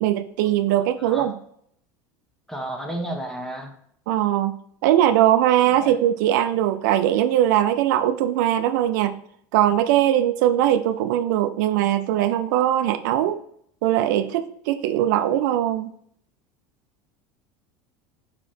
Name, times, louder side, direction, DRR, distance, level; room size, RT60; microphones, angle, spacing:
voice 1, 0.0-1.4 4.1-4.5 4.8-9.2 9.5-13.4 13.8-15.9, right 12 dB, 75° right, 10 dB, 0.5 m, -20 dB
voice 2, 1.0-1.3 2.5-3.7 5.8-5.9, right 1 dB, 5° left, 3 dB, 1.3 m, -32 dB
5.1 x 4.9 x 4.4 m, 0.66 s
supercardioid pair, 110°, 10 cm